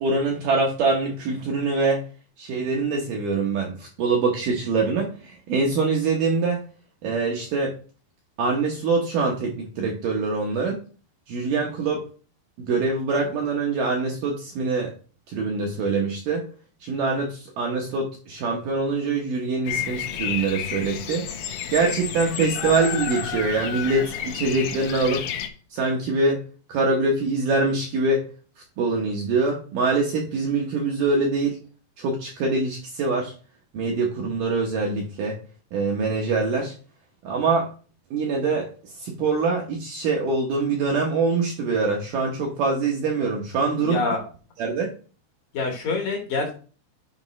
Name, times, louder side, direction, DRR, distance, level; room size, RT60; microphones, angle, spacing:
voice 1, 0.0-2.1 2.4-6.6 7.0-7.7 8.4-10.8 11.3-12.0 12.6-14.9 15.3-16.5 16.8-21.3 21.7-25.3 25.7-26.4 26.7-28.2 28.8-31.6 32.0-33.3 33.7-35.4 35.7-36.7 37.2-37.7 38.1-38.7 39.0-44.1 44.6-44.9, right 3 dB, 70° right, 0 dB, 2.1 m, -24 dB
Bird vocalization bird call bird song, 19.6-25.5, left 9 dB, 80° left, 2.1 m, -31 dB
voice 2, 43.7-44.2 45.5-46.5, left 4 dB, 65° left, 2 dB, 2.6 m, -26 dB
9.5 x 5.1 x 3.1 m, 0.38 s
omnidirectional pair, 4.9 m